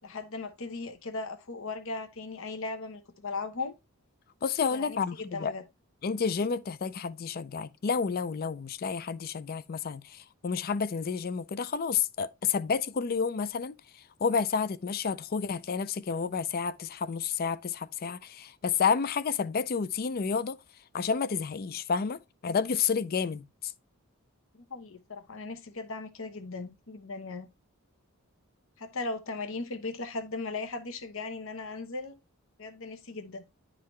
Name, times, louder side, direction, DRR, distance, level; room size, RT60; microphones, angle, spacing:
voice 1, 0.0-3.7 4.7-5.6 24.5-27.5 28.8-32.2 32.6-33.4, left 3 dB, 60° left, 0.9 m, -37 dB
voice 2, 4.4-5.5 6.0-20.6 20.9-23.7, left 6 dB, 45° left, 0.4 m, -30 dB
10.0 x 3.8 x 3.2 m
head